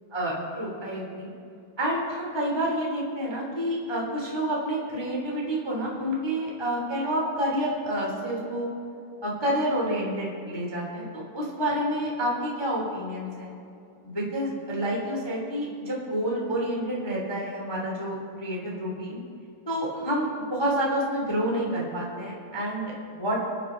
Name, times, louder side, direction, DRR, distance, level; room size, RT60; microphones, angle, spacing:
voice 1, 0.1-1.3 1.8-8.7 9.2-13.5 14.0-19.2 19.6-23.4, right 1 dB, 10° left, -3 dB, 1.5 m, -29 dB
26.0 x 9.8 x 3.9 m, 2.6 s
omnidirectional pair, 5.2 m